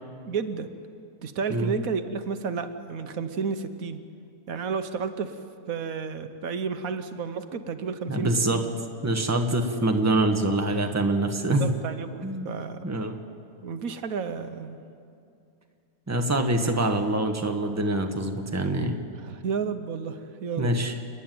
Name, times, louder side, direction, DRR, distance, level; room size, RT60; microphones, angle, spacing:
voice 1, 0.2-0.7 1.2-4.0 4.5-5.3 5.7-8.8 11.6-12.8 13.6-14.8 16.6-17.0 19.2-20.7, right 5 dB, 85° right, 9 dB, 1.4 m, -32 dB
voice 2, 8.1-8.6 9.0-11.7 12.2-12.5 12.8-13.2 16.1-19.0 20.6-20.9, right 1 dB, 10° right, 4 dB, 1.2 m, -25 dB
29.0 x 10.0 x 9.3 m, 2.5 s
omnidirectional pair, 1.4 m